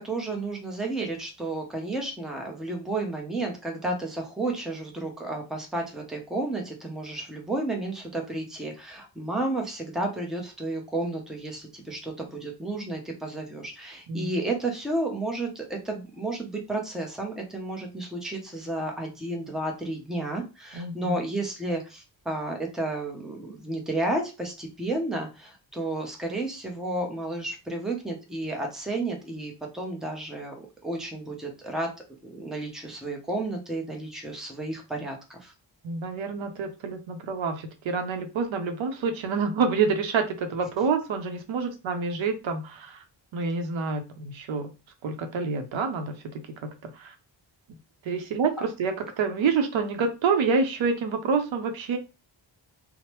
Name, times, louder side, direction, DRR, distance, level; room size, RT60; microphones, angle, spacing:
voice 1, 0.0-31.9 32.2-35.5, right 2 dB, ahead, 1 dB, 0.6 m, -32 dB
voice 2, 20.7-21.2 35.8-43.0 43.3-44.7 45.0-47.1 48.0-52.0, right 5 dB, 85° right, 6 dB, 0.7 m, -27 dB
3.0 x 2.1 x 2.9 m, 0.29 s
wide cardioid pair, 140°, 45 cm